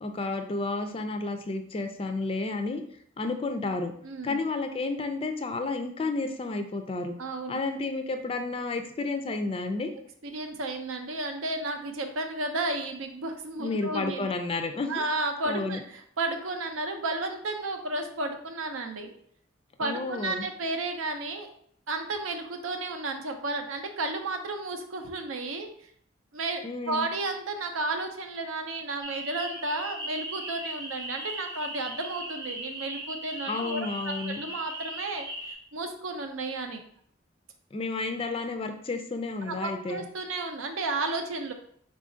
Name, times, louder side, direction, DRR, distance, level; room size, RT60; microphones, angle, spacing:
voice 1, 0.0-2.8 3.2-3.9 4.2-7.1 7.5-9.9 13.6-15.1 15.5-15.8 19.8-20.5 26.6-27.1 33.5-34.4 37.7-40.0, left 3 dB, 30° left, 6 dB, 0.3 m, -31 dB
voice 2, 4.0-4.4 7.2-7.6 10.2-14.3 14.9-15.8 16.2-19.1 19.8-21.5 21.9-25.7 26.3-33.8 34.0-35.3 35.7-36.8 39.4-41.5, right 2 dB, 90° right, 5 dB, 0.6 m, -32 dB
sound 1, 29.0-35.5, right 1 dB, 20° right, 0.6 m, -38 dB
4.0 x 2.4 x 3.7 m, 0.64 s
head